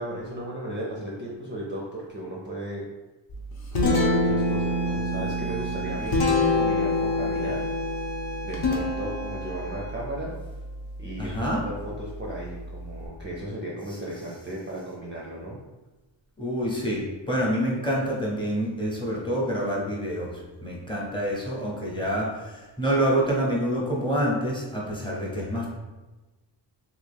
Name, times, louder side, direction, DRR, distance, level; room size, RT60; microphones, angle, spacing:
voice 1, 0.0-2.9 3.8-6.2 6.5-7.7 8.4-10.3 11.0-15.6, right 1 dB, 25° right, -4 dB, 0.4 m, -35 dB
Guitar, 3.3-13.1, left 2 dB, 55° left, 0.7 m, -27 dB
Bowed string instrument, 4.3-9.9, right 6 dB, 85° left, 1.1 m, -38 dB
voice 2, 11.2-11.6 16.4-25.7, equal, 10° left, -5 dB, 0.7 m, -27 dB
3.4 x 2.4 x 3.3 m, 1.2 s
wide cardioid pair, 170°, 44 cm